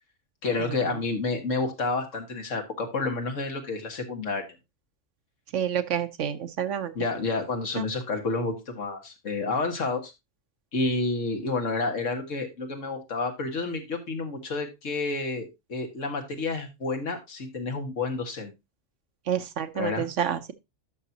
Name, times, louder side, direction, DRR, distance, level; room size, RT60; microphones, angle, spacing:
voice 1, 0.4-4.5 7.0-10.1 10.7-18.5 19.8-20.1, left 3 dB, 80° left, 2.0 m, -30 dB
voice 2, 5.5-6.9 7.8-7.9 19.3-20.5, right 9 dB, 80° right, 1.1 m, -29 dB
11.5 x 6.1 x 2.8 m
omnidirectional pair, 1.3 m